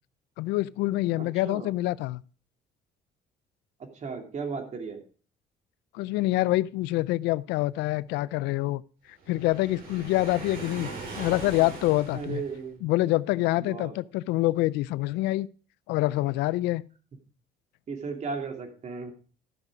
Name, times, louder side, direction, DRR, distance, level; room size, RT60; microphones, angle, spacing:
voice 1, 0.4-2.2 5.9-8.8 9.3-10.9 11.2-12.4 12.8-15.5 15.9-16.8, left 18 dB, 90° left, 0.4 m, -26 dB
voice 2, 1.2-1.7 3.9-5.0 12.1-12.9 13.6-13.9 17.9-19.1, right 5 dB, 45° right, 2.7 m, -35 dB
Waves surf, 9.2-12.7, right 3 dB, 60° right, 4.9 m, -40 dB
13.5 x 6.6 x 4.8 m
cardioid pair, 110°, 17 cm